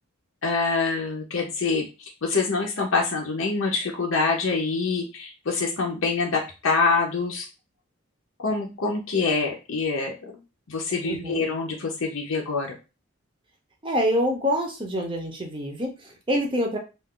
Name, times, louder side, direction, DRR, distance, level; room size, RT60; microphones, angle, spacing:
voice 1, 0.4-7.5 8.4-10.1 10.7-12.8, left 4 dB, 70° left, 0 dB, 0.6 m, -25 dB
voice 2, 11.0-11.4 13.8-16.8, equal, 25° right, 2 dB, 0.6 m, -26 dB
2.4 x 2.3 x 3.6 m, 0.30 s
head